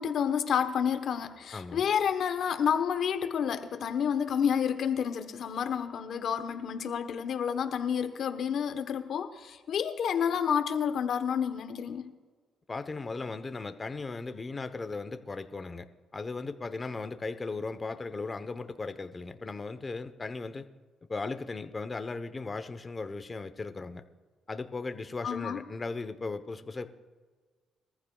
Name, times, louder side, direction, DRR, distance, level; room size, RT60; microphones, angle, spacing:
voice 1, 0.0-12.1 25.2-25.6, left 7 dB, 65° left, 1.1 m, -29 dB
voice 2, 1.5-1.8 12.7-15.9 16.1-20.7 21.1-24.0 24.5-26.9, left 3 dB, 30° left, 0.9 m, -37 dB
22.5 x 14.5 x 2.4 m
cardioid pair, 90°, 0 cm